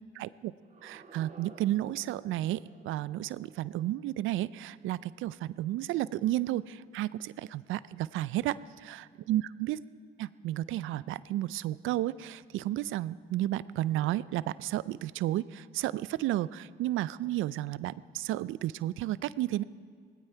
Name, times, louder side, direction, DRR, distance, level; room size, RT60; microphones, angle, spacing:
voice 1, 0.2-0.5 0.8-8.6 9.3-9.8 10.2-19.6, right 14 dB, 85° right, 18 dB, 0.4 m, -32 dB
sound 1, 0.6-5.5, right 4 dB, 40° right, 1.9 m, -56 dB
18.0 x 16.5 x 4.5 m, 2.1 s
cardioid pair, 90°, 20 cm